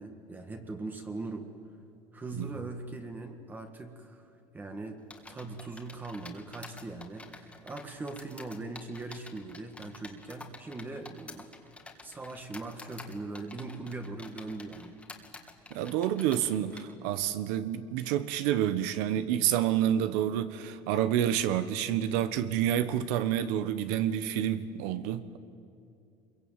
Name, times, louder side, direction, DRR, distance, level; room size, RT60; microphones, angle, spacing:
voice 1, 0.0-1.5 2.1-4.3 4.5-5.0 5.3-11.5 12.0-15.0, right 3 dB, 15° right, 5 dB, 1.7 m, -40 dB
sound 1, 5.1-16.8, left 3 dB, 10° left, 2.1 m, -49 dB
voice 2, 15.7-25.4, right 10 dB, 90° right, 12 dB, 1.3 m, -28 dB
24.5 x 22.5 x 9.0 m, 2.6 s
cardioid pair, 145°, 11 cm